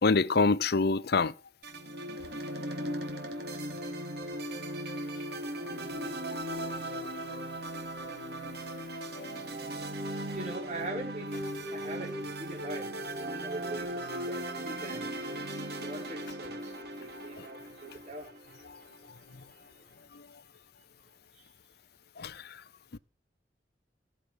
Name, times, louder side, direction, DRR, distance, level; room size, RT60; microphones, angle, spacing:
voice 1, 0.0-1.3 5.7-5.9 6.3-6.7 9.2-9.3 17.4-17.5 22.2-22.3, left 4 dB, 65° left, 0.7 m, -27 dB
sound 1, 1.6-19.0, right 1 dB, 65° right, 2.7 m, -38 dB
voice 2, 10.3-11.4 11.7-15.0 15.7-18.3, right 2 dB, 45° right, 3.8 m, -42 dB
18.0 x 7.4 x 5.7 m
head